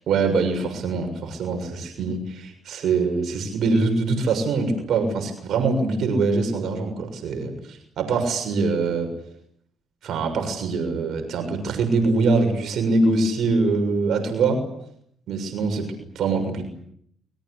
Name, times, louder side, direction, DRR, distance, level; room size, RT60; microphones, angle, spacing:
voice 1, 0.1-9.1 10.0-14.6 15.3-15.9 16.1-16.7, right 3 dB, 70° right, 5 dB, 6.7 m, -23 dB
29.0 x 23.0 x 8.3 m, 0.70 s
cardioid pair, 90°, 0 cm